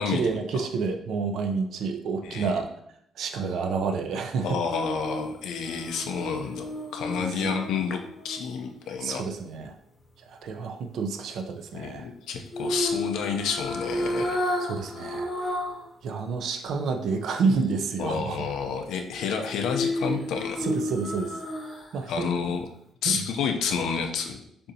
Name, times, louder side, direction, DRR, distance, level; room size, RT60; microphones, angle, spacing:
voice 1, 0.0-2.7 3.2-4.6 7.3-7.6 9.0-9.7 10.3-12.1 14.6-15.3 16.0-18.4 20.6-21.4 21.9-22.3 23.0-23.3, right 4 dB, 70° right, 5 dB, 0.6 m, -29 dB
voice 2, 2.2-2.6 4.4-9.2 11.7-14.4 18.0-20.7 22.1-22.7 23.0-24.4, left 6 dB, 80° left, 5 dB, 0.5 m, -30 dB
sound 1, 4.7-8.9 12.5-15.9 16.3-16.4 19.2-22.1 22.4-22.6, left 1 dB, 35° left, 0.8 m, -32 dB
6.7 x 2.7 x 2.7 m, 0.72 s
cardioid pair, 125°, 0 cm